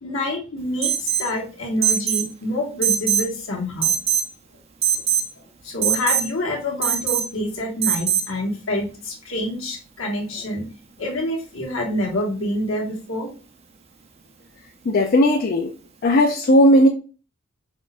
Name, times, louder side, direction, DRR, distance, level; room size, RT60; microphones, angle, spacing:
voice 1, 0.0-3.9 5.6-10.7 11.0-13.3, left 1 dB, 75° left, 1.4 m, -27 dB
Alarm, 0.8-1.3 1.8-2.3 2.8-3.3 3.8-4.3 4.8-5.3 5.8-6.3 6.8-7.3 7.8-8.3, right 9 dB, 30° right, 0.4 m, -21 dB
voice 2, 14.9-15.7 16.0-16.9, equal, 45° left, 0.4 m, -16 dB
4.3 x 2.4 x 3.4 m
head